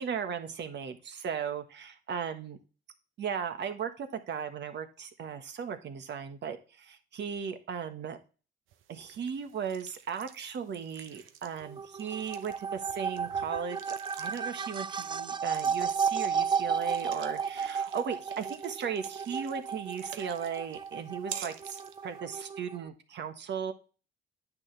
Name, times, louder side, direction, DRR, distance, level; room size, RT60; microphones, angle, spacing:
voice 1, 0.0-2.6 3.2-8.2 8.9-23.7, right 7 dB, 60° right, 7 dB, 1.4 m, -37 dB
sound 1, 8.7-22.2, right 9 dB, 85° right, 0.9 m, -50 dB
sound 2, 11.6-22.9, right 6 dB, 25° right, 0.4 m, -33 dB
9.7 x 6.3 x 3.3 m, 0.35 s
cardioid pair, 90°, 20 cm